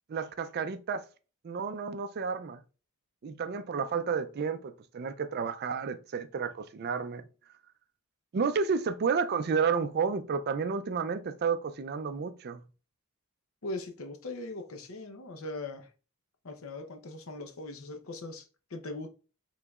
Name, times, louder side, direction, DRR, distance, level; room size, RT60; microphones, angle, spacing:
voice 1, 0.1-1.0 1.4-2.6 3.2-7.2 8.3-12.6, right 5 dB, 45° right, 0.4 m, -31 dB
voice 2, 13.6-15.9 16.4-18.4 18.7-19.1, left 2 dB, 65° left, 0.8 m, -40 dB
4.9 x 3.8 x 2.3 m
head